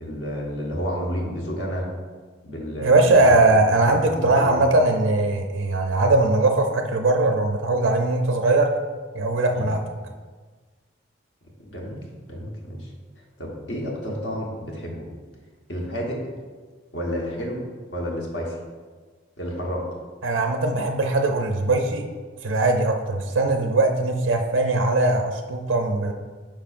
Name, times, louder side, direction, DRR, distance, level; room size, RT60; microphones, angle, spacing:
voice 1, 0.0-1.9 2.4-3.6 3.9-4.7 9.5-9.7 11.6-12.0 12.3-12.9 13.4-15.1 15.7-16.2 16.9-17.6 17.9-18.6 19.4-19.9, equal, 65° left, -2 dB, 1.2 m, -30 dB
voice 2, 2.8-8.7 9.1-9.8 20.2-22.1 22.4-26.1, right 2 dB, 90° right, 4 dB, 0.6 m, -20 dB
8.8 x 4.9 x 2.5 m, 1.4 s
head